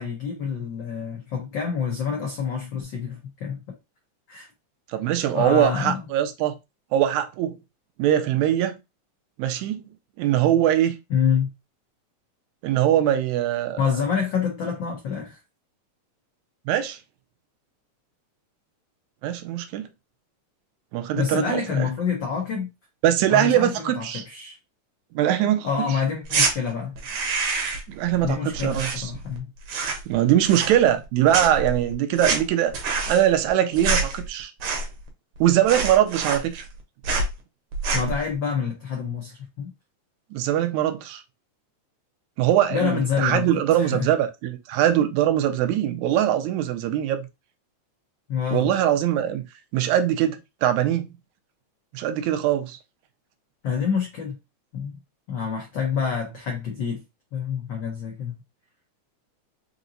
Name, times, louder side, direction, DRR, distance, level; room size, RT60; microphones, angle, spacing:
voice 1, 0.0-3.6 4.3-4.5 5.3-6.1 11.1-11.5 13.8-15.4 21.1-22.7 23.3-24.6 25.6-27.0 28.2-29.5 37.9-39.7 42.7-44.1 48.3-48.7 53.6-54.4 54.7-55.0 55.3-57.0 57.3-58.3, left 6 dB, 85° left, 1.0 m, -27 dB
voice 2, 4.9-6.6 6.9-7.6 8.0-8.8 9.4-9.9 10.2-11.0 12.6-13.8 16.7-17.0 19.2-19.9 20.9-21.9 23.0-24.2 25.1-25.7 27.9-29.1 30.1-32.8 33.1-34.5 35.4-36.6 40.3-41.2 42.4-47.3 48.5-49.5 49.7-51.1 51.9-52.8, right 11 dB, 85° right, 1.9 m, -22 dB
sound 1, 26.2-26.5 27.0-27.9 28.2-29.4 29.6-30.1 30.4-31.1 31.3-35.1 35.4-35.5 35.7-36.8 37.0-37.3 37.7-38.2, right 4 dB, 65° right, 1.5 m, -26 dB
5.1 x 2.8 x 2.6 m
omnidirectional pair, 3.3 m